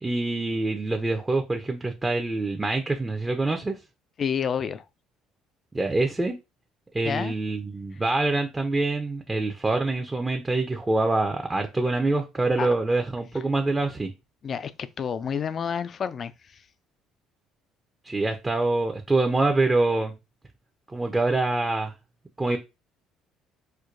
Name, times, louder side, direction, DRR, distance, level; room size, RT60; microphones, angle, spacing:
voice 1, 0.0-3.8 5.7-6.4 6.9-14.1 18.0-20.1 20.9-21.9 22.4-22.6, right 2 dB, 15° right, 0.5 m, -25 dB
voice 2, 4.2-4.8 7.0-7.3 12.6-12.7 14.4-16.6, left 7 dB, 45° left, 0.3 m, -29 dB
4.4 x 2.2 x 2.5 m
supercardioid pair, 75°, 0 cm